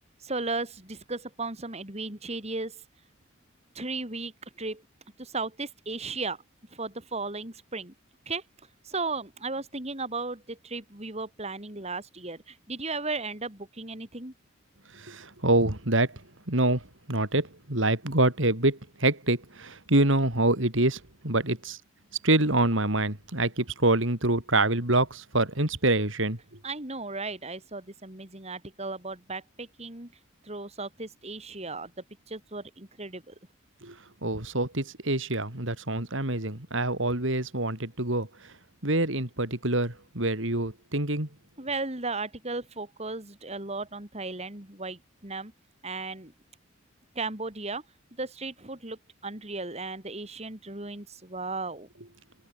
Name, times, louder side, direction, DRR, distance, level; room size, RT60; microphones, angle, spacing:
voice 1, 0.2-2.8 3.7-4.3 4.6-4.8 5.2-6.4 6.7-7.9 8.3-8.4 8.8-14.3 26.6-30.1 30.4-31.9 32.3-33.3 41.6-45.5 45.8-46.3 47.2-47.8 48.2-51.9, right 3 dB, 30° right, 3.7 m, -35 dB
voice 2, 14.9-16.2 16.5-21.8 22.2-26.4 33.8-38.5 38.8-41.3, right 2 dB, 65° right, 3.9 m, -26 dB
open air
head